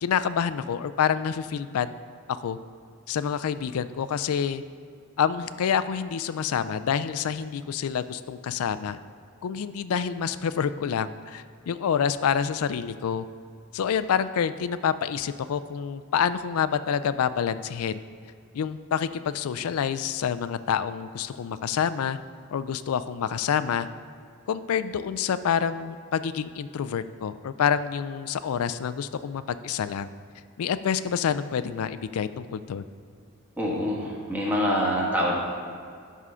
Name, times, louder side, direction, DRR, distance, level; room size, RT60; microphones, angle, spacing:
voice 1, 0.0-1.9 2.4-2.6 3.1-4.6 5.2-9.0 9.4-13.2 13.7-18.0 18.5-22.2 22.5-23.9 24.5-30.1 30.6-32.8, left 7 dB, 80° left, 13 dB, 0.4 m, -27 dB
voice 2, 33.6-35.3, equal, 10° right, -4 dB, 1.3 m, -25 dB
11.0 x 3.7 x 5.6 m, 2.2 s
head